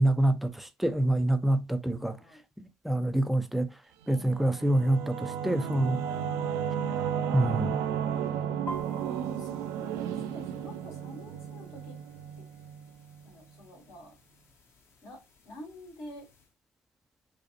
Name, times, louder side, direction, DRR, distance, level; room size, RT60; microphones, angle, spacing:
voice 1, 0.0-2.2 2.6-3.7 4.1-6.0 7.3-7.8, right 1 dB, ahead, 0.4 m, -26 dB
voice 2, 2.0-2.4 4.1-4.7 6.0-6.4 9.0-9.9 10.2-12.0 12.4-12.5 13.2-14.1 15.0-16.3, left 1 dB, 65° left, 1.9 m, -49 dB
Singing / Musical instrument, 4.1-13.3, right 8 dB, 75° right, 0.4 m, -33 dB
sound 1, 8.7-16.5, equal, 45° left, 1.1 m, -50 dB
4.9 x 2.0 x 2.8 m
supercardioid pair, 85°, 6 cm